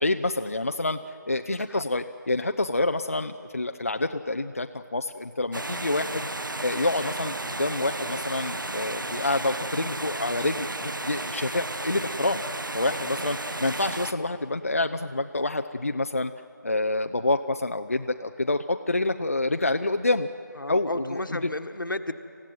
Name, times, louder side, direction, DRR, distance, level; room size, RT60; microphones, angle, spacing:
voice 1, 0.0-1.0 1.3-6.3 6.6-12.4 12.7-16.3 16.6-20.3 20.7-20.9, left 2 dB, 45° left, 7 dB, 0.6 m, -27 dB
voice 2, 1.4-1.8 14.6-14.8 20.5-22.2, left 2 dB, 80° left, 7 dB, 1.6 m, -33 dB
sound 1, 5.5-14.1, right 2 dB, 75° right, 1.2 m, -33 dB
27.5 x 16.0 x 9.3 m, 2.5 s
figure-of-eight pair, 180°, 11 cm